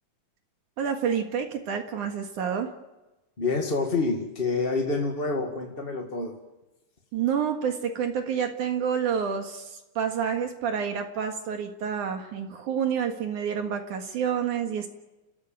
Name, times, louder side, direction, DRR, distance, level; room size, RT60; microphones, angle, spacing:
voice 1, 0.8-2.7 7.1-14.9, right 7 dB, 70° right, 4 dB, 3.1 m, -28 dB
voice 2, 3.4-6.3, left 3 dB, 25° left, 2 dB, 1.5 m, -27 dB
30.0 x 14.5 x 9.0 m, 1.0 s
omnidirectional pair, 3.7 m